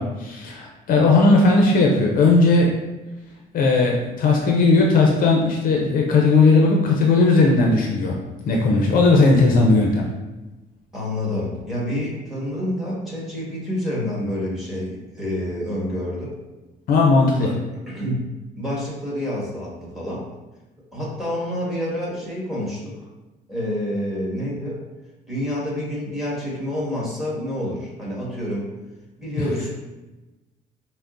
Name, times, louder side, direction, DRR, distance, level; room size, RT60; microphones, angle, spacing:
voice 1, 0.0-2.8 3.5-8.2 8.5-10.1 16.9-17.5, left 3 dB, 55° left, 0 dB, 0.5 m, -17 dB
voice 2, 10.9-16.3 17.3-17.5 17.9-20.2 20.9-23.1 23.5-24.8 25.3-28.7 29.2-29.7, left 1 dB, ahead, -5 dB, 1.4 m, -28 dB
5.7 x 2.0 x 2.6 m, 1.1 s
cardioid pair, 110°, 17 cm